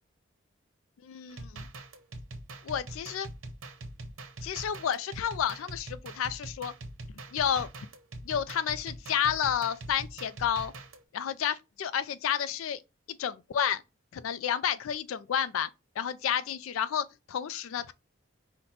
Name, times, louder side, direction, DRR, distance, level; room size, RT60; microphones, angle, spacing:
voice 1, 1.0-1.7 2.6-3.3 4.4-6.7 7.3-7.7 8.2-10.7 11.1-12.8 13.2-13.8 14.1-15.7 16.0-17.9, left 9 dB, 85° left, 0.3 m, -30 dB
sound 1, 1.3-11.0, right 2 dB, 90° right, 0.8 m, -43 dB
5.6 x 2.1 x 4.1 m
head